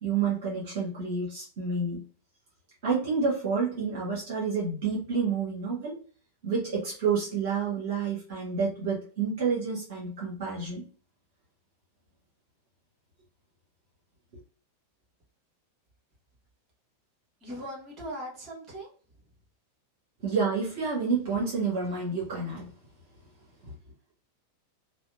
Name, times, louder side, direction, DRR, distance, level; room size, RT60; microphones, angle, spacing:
voice 1, 0.0-2.0 2.8-6.0 6.4-10.8 20.2-22.7 23.6-23.7, right 5 dB, 50° right, -5 dB, 0.9 m, -29 dB
voice 2, 17.4-18.9, equal, 30° right, -2 dB, 1.2 m, -39 dB
2.7 x 2.0 x 2.4 m, 0.41 s
figure-of-eight pair, 90°, 0 cm